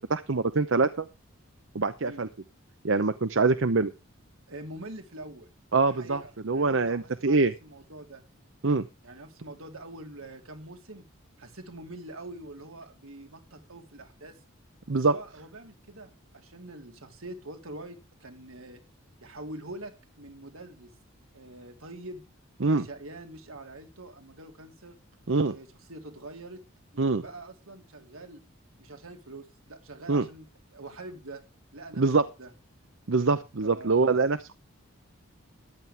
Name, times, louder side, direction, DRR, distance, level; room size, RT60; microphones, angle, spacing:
voice 1, 0.1-1.1 1.7-2.3 2.8-3.9 5.7-7.5 8.6-8.8 14.9-15.1 22.6-22.9 25.3-25.5 27.0-27.2 30.1-30.2 32.0-32.2 33.1-34.6, right 3 dB, 65° right, 12 dB, 0.8 m, -24 dB
voice 2, 4.5-5.5 5.9-8.2 9.0-11.0 11.4-14.4 15.1-18.8 19.2-20.9 21.3-22.2 22.7-25.0 25.5-26.6 26.9-28.4 28.8-31.4 31.7-32.5 33.6-34.4, right 2 dB, 85° right, 4 dB, 3.4 m, -44 dB
14.0 x 11.0 x 3.5 m, 0.29 s
head